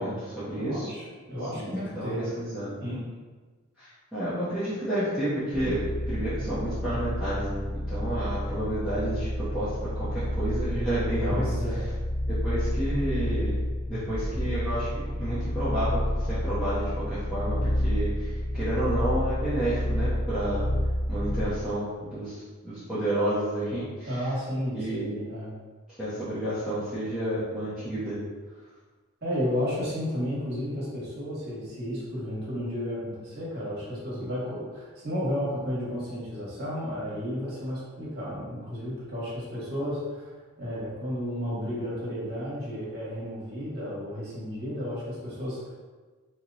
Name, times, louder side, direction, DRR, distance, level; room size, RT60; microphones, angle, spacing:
voice 1, 0.0-0.9 1.5-2.8 3.8-11.4 12.4-13.6 13.9-20.6 21.1-24.2 24.7-25.2 26.0-28.2, right 1 dB, 5° right, -14 dB, 0.7 m, -31 dB
voice 2, 0.5-2.4 2.8-3.0 11.3-11.9 24.1-25.5 29.2-40.3 40.6-45.7, equal, 45° right, -7 dB, 1.2 m, -32 dB
sound 1, 5.5-21.7, equal, 65° left, 1.3 m, -29 dB
2.9 x 2.2 x 3.8 m, 1.4 s
head